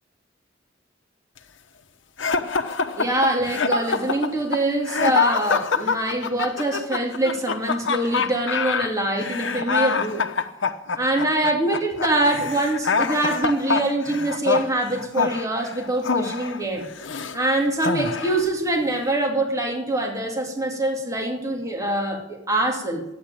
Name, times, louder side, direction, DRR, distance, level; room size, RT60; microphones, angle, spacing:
sound 1, 2.2-17.4 17.8-18.5, left 5 dB, 85° left, 1.1 m, -25 dB
voice 1, 3.0-10.2 11.0-16.9 17.3-23.0, right 1 dB, 20° right, 0 dB, 2.7 m, -24 dB
13.0 x 10.0 x 9.0 m, 0.85 s
head